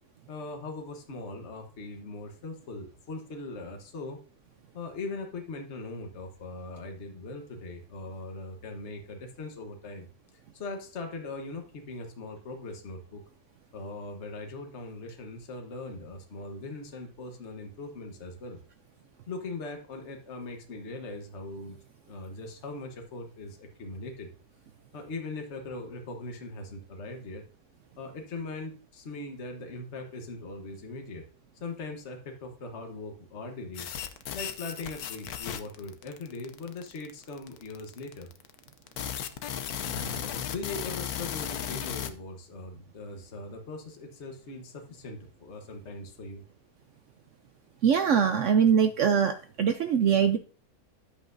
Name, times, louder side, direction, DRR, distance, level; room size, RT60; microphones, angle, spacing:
voice 1, 0.3-4.2 4.7-10.1 10.5-13.2 13.7-18.6 19.3-21.8 22.1-24.3 24.9-27.4 28.0-31.2 31.6-33.9 34.3-38.3 39.8-46.4, left 3 dB, 50° left, 3 dB, 1.4 m, -40 dB
sound 1, 33.7-42.1, left 9 dB, 80° left, 1.2 m, -35 dB
voice 2, 47.8-50.4, right 7 dB, 65° right, 8 dB, 0.8 m, -23 dB
10.5 x 7.8 x 2.6 m, 0.40 s
omnidirectional pair, 1.6 m